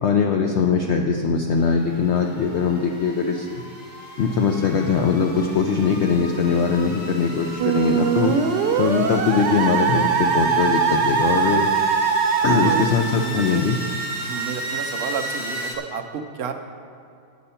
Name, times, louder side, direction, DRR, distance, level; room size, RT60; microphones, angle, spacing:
voice 1, 0.0-3.6 4.2-8.3 8.8-11.7 12.4-13.8, left 5 dB, 70° left, 2 dB, 0.6 m, -21 dB
sound 1, 1.6-15.7, right 1 dB, 25° left, 1.3 m, -34 dB
Musical instrument, 7.6-12.8, right 6 dB, 90° right, 1.3 m, -21 dB
voice 2, 13.1-13.6 14.3-16.5, right 6 dB, 55° right, 4 dB, 0.7 m, -30 dB
8.6 x 8.3 x 5.5 m, 2.6 s
omnidirectional pair, 1.8 m